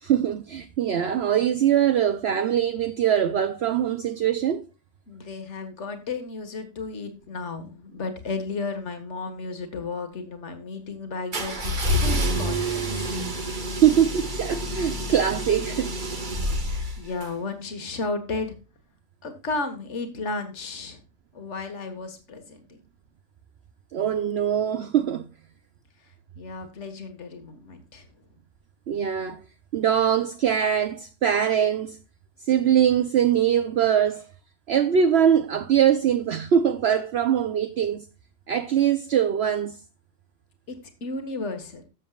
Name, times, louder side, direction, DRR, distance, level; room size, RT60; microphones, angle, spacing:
voice 1, 0.0-4.6 13.8-15.9 23.9-25.2 28.9-29.4 29.7-32.0 32.4-34.2 34.7-38.0 38.5-39.8, right 9 dB, 60° right, 0.9 m, -22 dB
voice 2, 5.1-12.9 17.0-18.6 19.2-21.0 21.3-22.8 26.4-28.1 40.7-40.8 41.0-41.8, left 3 dB, 65° left, 1.9 m, -33 dB
sound 1, 11.3-17.3, equal, 40° right, 1.4 m, -28 dB
14.0 x 7.3 x 2.3 m
omnidirectional pair, 1.3 m